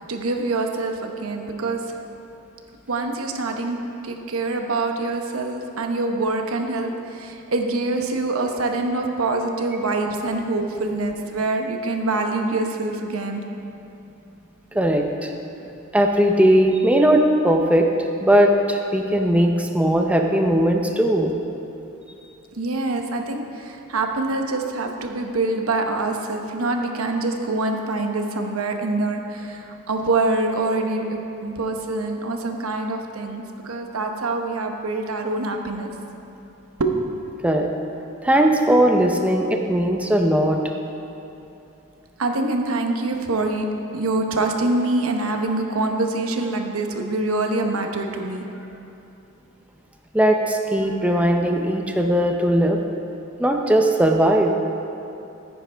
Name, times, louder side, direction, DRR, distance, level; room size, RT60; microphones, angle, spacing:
voice 1, 0.1-1.8 2.9-13.4 22.6-35.9 36.8-37.2 42.2-43.7 43.9-48.4, right 2 dB, 80° right, 4 dB, 0.9 m, -25 dB
voice 2, 14.7-15.3 15.9-17.9 18.2-21.3 37.4-37.7 38.2-40.6 50.1-52.8 53.4-54.5, right 1 dB, 5° right, 2 dB, 0.5 m, -18 dB
14.0 x 9.8 x 3.4 m, 2.9 s
head